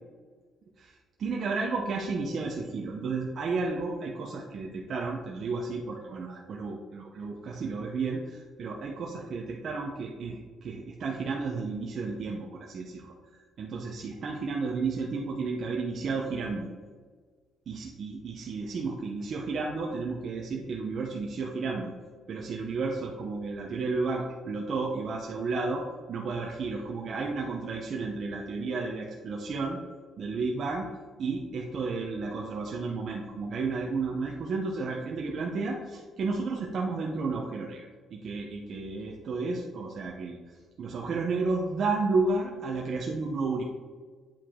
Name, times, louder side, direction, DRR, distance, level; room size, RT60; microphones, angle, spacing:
voice 1, 0.8-13.1 13.6-16.7 17.7-21.9 22.3-29.8 30.2-30.9 31.2-43.6, right 3 dB, 60° right, 0 dB, 0.8 m, -32 dB
8.8 x 4.8 x 3.7 m, 1.5 s
cardioid pair, 90°, 0 cm